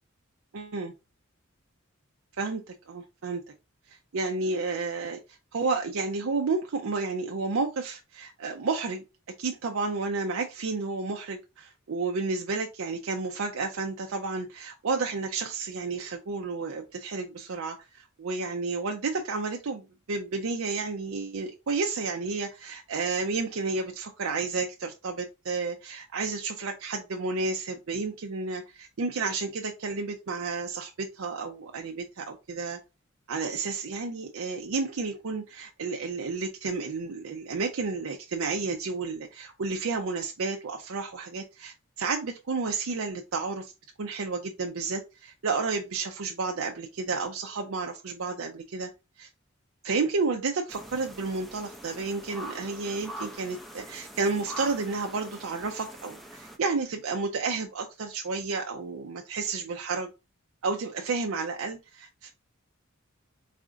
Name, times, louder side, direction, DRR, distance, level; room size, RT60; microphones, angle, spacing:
voice 1, 0.5-0.9 2.4-3.4 3.9-9.0 9.4-32.8 33.3-43.7 44.0-48.9 49.2-49.3 49.8-60.1 60.6-62.3, right 4 dB, 70° right, 3 dB, 0.5 m, -31 dB
sound 1, 50.7-56.6, right 1 dB, ahead, 0.5 m, -43 dB
4.2 x 2.5 x 3.7 m, 0.27 s
head